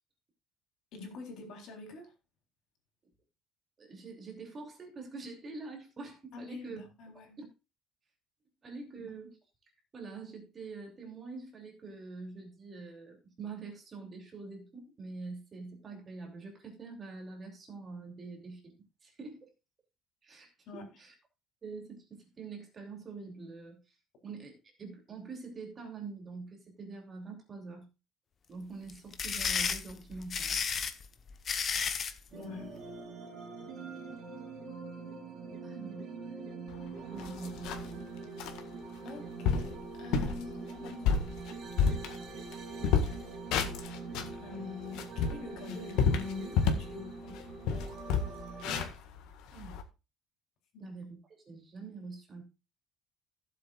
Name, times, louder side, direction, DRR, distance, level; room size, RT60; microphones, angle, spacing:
voice 1, 0.9-2.1 6.3-7.3 9.0-9.1 20.7-20.9 32.3-32.7 39.0-41.2 44.3-47.5 50.7-50.8, left 4 dB, 55° left, 3 dB, 3.8 m, -45 dB
voice 2, 3.8-6.8 7.4-7.5 8.6-9.4 9.9-18.7 19.0-19.5 20.2-21.1 21.6-23.9 24.2-27.9 28.5-30.6 35.6-36.1 37.1-38.1 49.5-49.8 50.8-52.4, right 4 dB, 25° right, 2 dB, 2.9 m, -45 dB
sound 1, 28.9-32.2, left 6 dB, 30° left, 0.9 m, -32 dB
sound 2, 32.3-48.8, right 4 dB, 45° right, 2.9 m, -44 dB
sound 3, 36.7-36.8 37.2-38.0 38.4-38.6 39.1-39.2 39.4-39.7 40.1-40.4 40.8-42.5 42.8-44.4 44.8-46.9 47.3-47.4 47.7-49.8, left 6 dB, 75° left, 1.7 m, -30 dB
16.0 x 7.7 x 2.4 m, 0.27 s
cardioid pair, 170°, 0 cm